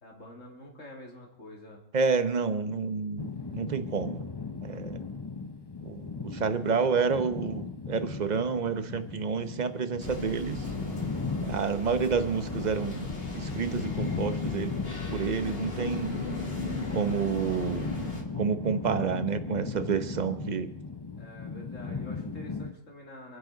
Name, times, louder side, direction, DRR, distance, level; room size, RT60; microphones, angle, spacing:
voice 1, 0.0-1.8 21.2-23.4, left 1 dB, 65° left, -1 dB, 3.2 m, -47 dB
voice 2, 1.9-4.3 4.6-5.0 5.8-10.7 11.4-13.1 13.3-14.7 15.1-16.2 16.9-17.9 18.4-20.7, right 5 dB, 35° right, 10 dB, 1.0 m, -29 dB
sound 1, 3.2-22.7, left 4 dB, 25° left, 0.6 m, -37 dB
sound 2, 10.0-18.2, left 2 dB, 45° left, 3.0 m, -38 dB
28.0 x 10.0 x 4.0 m, 0.78 s
omnidirectional pair, 1.5 m